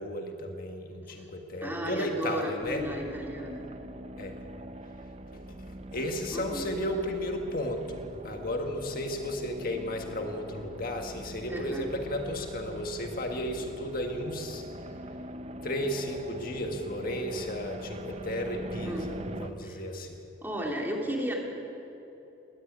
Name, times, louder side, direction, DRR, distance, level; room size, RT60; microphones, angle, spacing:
voice 1, 0.0-2.9 4.2-4.4 5.3-14.6 15.6-20.2, left 1 dB, 50° left, 3 dB, 1.6 m, -34 dB
voice 2, 1.6-3.6 6.3-6.6 11.5-11.8 18.8-19.3 19.6-19.8 20.4-21.4, equal, 10° right, -1 dB, 2.9 m, -34 dB
sound 1, 2.6-19.5, right 1 dB, 35° right, 0.7 m, -43 dB
20.5 x 14.0 x 9.4 m, 2.9 s
head